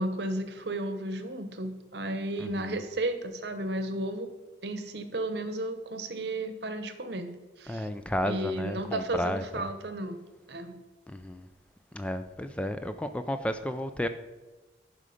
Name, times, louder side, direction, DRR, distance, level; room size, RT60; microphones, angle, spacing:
voice 1, 0.0-4.3 4.6-7.3 7.6-7.9 8.2-10.2 10.5-10.7, right 1 dB, 60° right, 8 dB, 0.9 m, -33 dB
voice 2, 2.4-2.8 7.7-9.7 11.1-11.5 11.9-14.1, equal, 5° left, 9 dB, 0.3 m, -33 dB
11.0 x 5.0 x 5.0 m, 1.2 s
head